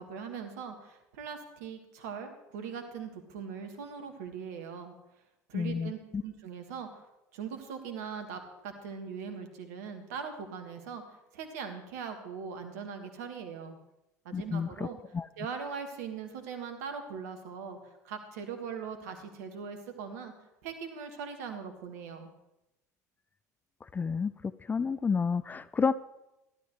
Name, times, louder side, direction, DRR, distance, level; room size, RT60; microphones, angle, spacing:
voice 1, 0.0-4.9 5.5-7.0 7.3-13.8 14.3-15.0 15.4-17.8 18.0-20.3 20.6-22.3, right 6 dB, 65° right, 6 dB, 1.8 m, -40 dB
voice 2, 5.5-6.2 14.3-14.9 15.1-15.3 23.9-24.3 24.7-25.9, left 5 dB, 20° left, 15 dB, 0.4 m, -30 dB
15.5 x 12.0 x 3.2 m, 0.93 s
figure-of-eight pair, 70°, 9 cm